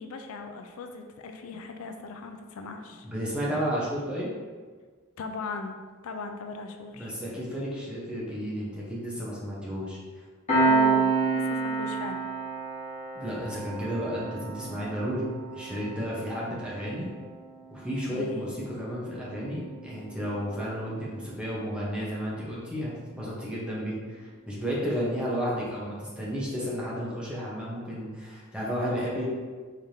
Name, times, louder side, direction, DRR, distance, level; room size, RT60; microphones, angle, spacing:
voice 1, 0.0-3.1 5.2-5.8 6.0-7.1 10.6-12.2 18.1-18.5, left 4 dB, 75° left, 5 dB, 0.4 m, -38 dB
voice 2, 3.0-4.3 6.9-10.0 13.1-17.1 17.7-29.3, equal, 5° right, -6 dB, 1.0 m, -32 dB
Piano, 10.5-21.6, right 4 dB, 35° left, 1.5 m, -31 dB
4.8 x 3.4 x 2.8 m, 1.5 s
head